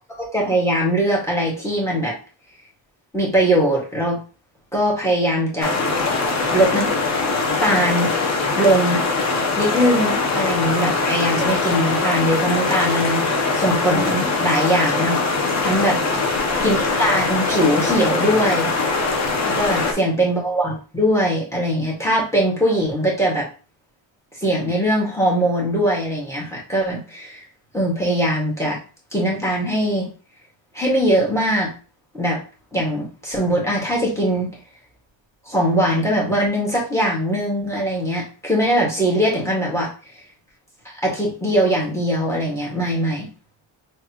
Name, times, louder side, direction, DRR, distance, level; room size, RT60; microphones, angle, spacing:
voice 1, 0.1-2.2 3.1-4.2 4.7-5.7 6.5-6.9 7.6-8.1 8.5-9.0 9.6-16.0 16.6-18.7 19.4-23.5 24.4-27.4 27.7-28.8 29.1-30.1 30.7-31.7 32.1-32.4 32.7-34.5 35.5-39.9 41.0-43.3, equal, 5° left, -3 dB, 1.8 m, -21 dB
sound 1, 5.6-19.9, left 3 dB, 35° left, 0.9 m, -22 dB
4.0 x 3.3 x 3.0 m, 0.36 s
cardioid pair, 120°, 49 cm